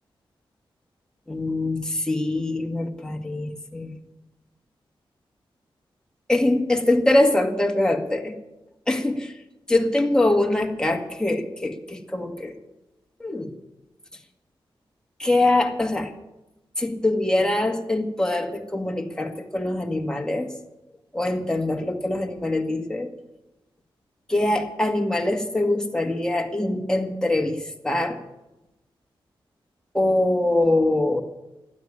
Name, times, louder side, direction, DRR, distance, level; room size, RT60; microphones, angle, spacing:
voice 1, 1.3-3.9 6.3-8.4 8.9-9.3 9.7-12.5 13.2-13.5 15.2-16.1 16.8-20.5 21.1-23.1 24.3-28.2 29.9-31.2, left 2 dB, 10° left, 2 dB, 2.0 m, -23 dB
12.5 x 9.8 x 8.8 m, 0.97 s
cardioid pair, 60°, 9 cm